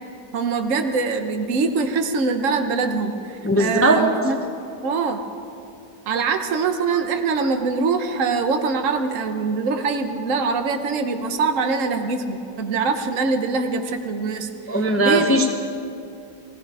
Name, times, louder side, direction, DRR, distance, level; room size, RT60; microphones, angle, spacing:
voice 1, 0.3-4.4 4.8-5.2 6.1-14.5 15.0-15.5, right 4 dB, 50° right, 7 dB, 1.2 m, -23 dB
voice 2, 3.4-4.0 14.7-15.5, right 1 dB, 15° left, 4 dB, 0.5 m, -18 dB
18.0 x 16.5 x 4.8 m, 2.6 s
omnidirectional pair, 1.9 m